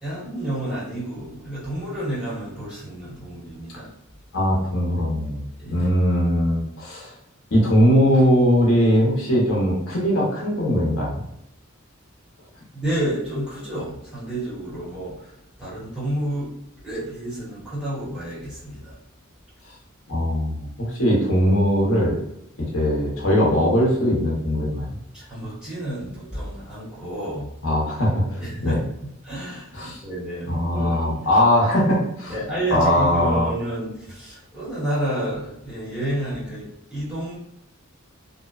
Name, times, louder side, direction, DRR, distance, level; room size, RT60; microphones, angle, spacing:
voice 1, 0.0-3.9 5.6-5.9 12.7-15.3 15.6-16.5 16.8-18.9 25.1-27.5 28.4-28.8 29.2-31.2 32.3-37.4, right 1 dB, 5° right, -10 dB, 1.1 m, -30 dB
voice 2, 4.3-5.4 5.7-7.1 7.5-11.2 20.1-22.2 22.6-24.9 27.6-28.8 29.7-30.0 30.5-32.4 32.7-33.5, equal, 70° left, -4 dB, 0.8 m, -20 dB
2.7 x 2.1 x 2.3 m, 0.81 s
head